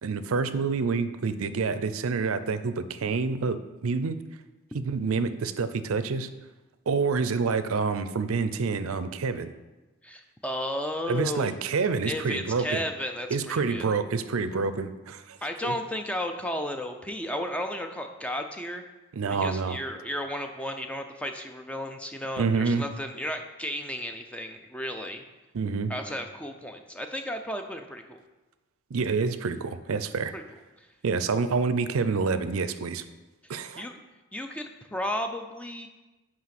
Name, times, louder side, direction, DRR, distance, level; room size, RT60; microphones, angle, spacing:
voice 1, 0.0-4.2 4.7-6.3 6.9-9.5 11.1-12.8 13.3-15.4 15.6-15.7 19.1-19.8 22.4-22.9 25.5-25.9 28.9-30.3 31.0-33.0 33.5-33.9, right 4 dB, 75° right, 12 dB, 0.5 m, -27 dB
voice 2, 10.0-11.5 12.1-13.3 13.7-13.8 15.4-18.8 19.3-25.2 25.9-28.2 30.3-30.4 30.8-30.9 33.4-34.0 34.3-35.9, left 1 dB, 5° left, 5 dB, 0.4 m, -33 dB
6.0 x 4.9 x 5.9 m, 1.1 s
head